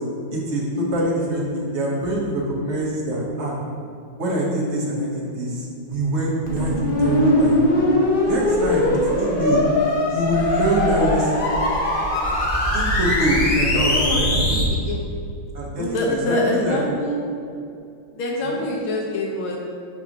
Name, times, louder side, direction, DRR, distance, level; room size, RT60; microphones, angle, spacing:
voice 1, 0.3-3.6 4.2-7.6 8.2-8.9 9.2-9.6 10.1-11.4 12.7-14.4 15.5-16.8, right 1 dB, 40° right, -4 dB, 1.2 m, -24 dB
sound 1, 6.5-14.6, left 1 dB, 60° left, 0.5 m, -20 dB
voice 2, 8.9-9.3 13.7-14.2 14.5-15.0 15.8-17.2 18.1-19.6, left 1 dB, 80° left, -1 dB, 1.5 m, -26 dB
6.1 x 3.4 x 5.9 m, 2.5 s
omnidirectional pair, 2.2 m